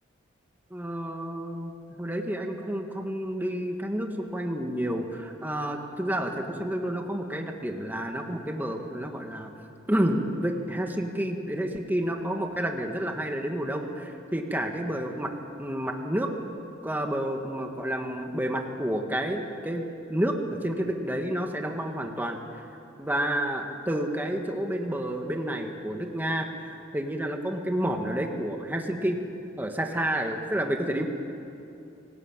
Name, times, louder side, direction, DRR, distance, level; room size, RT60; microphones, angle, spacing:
voice 1, 0.7-9.5 9.9-15.3 15.6-16.3 16.8-19.8 20.1-22.6 23.0-26.5 26.9-29.2 29.6-31.1, right 1 dB, 10° right, 3 dB, 1.7 m, -30 dB
27.5 x 18.5 x 9.0 m, 2.8 s
head